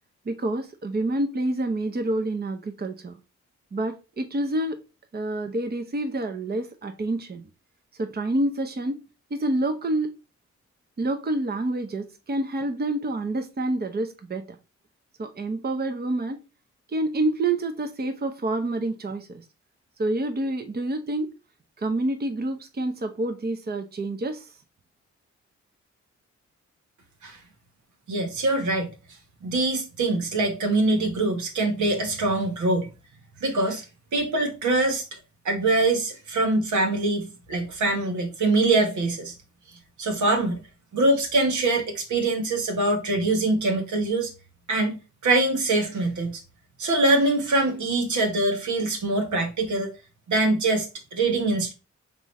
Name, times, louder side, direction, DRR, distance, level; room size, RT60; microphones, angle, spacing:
voice 1, 0.3-3.2 3.7-4.8 5.1-7.5 8.0-9.0 9.3-10.1 11.0-14.4 15.2-16.4 16.9-19.4 20.0-21.3 21.8-24.5, right 2 dB, 35° right, 0.8 m, -28 dB
voice 2, 28.1-28.9 29.4-32.9 33.4-33.8 34.1-35.0 35.4-39.3 40.0-40.6 40.9-44.3 44.7-45.0 45.2-46.4 46.8-49.9 50.3-51.7, right 2 dB, 80° right, 1.3 m, -23 dB
3.8 x 3.7 x 3.1 m
cardioid pair, 55°, 29 cm